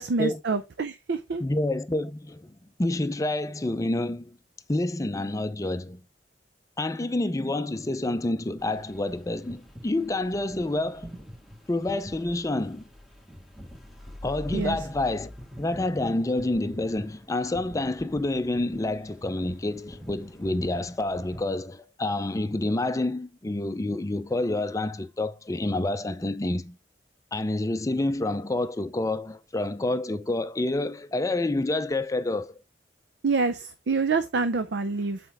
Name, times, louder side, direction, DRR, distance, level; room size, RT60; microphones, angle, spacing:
voice 1, 0.0-1.4 14.5-14.8 33.2-35.2, right 4 dB, 75° right, 0.5 m, -27 dB
voice 2, 1.4-4.4 4.7-6.0 6.8-11.1 11.7-12.9 14.2-15.3 15.6-26.8 27.3-32.6, left 2 dB, 20° left, 0.5 m, -28 dB
sound 1, 8.6-21.4, equal, ahead, 1.2 m, -45 dB
8.0 x 4.4 x 3.4 m
head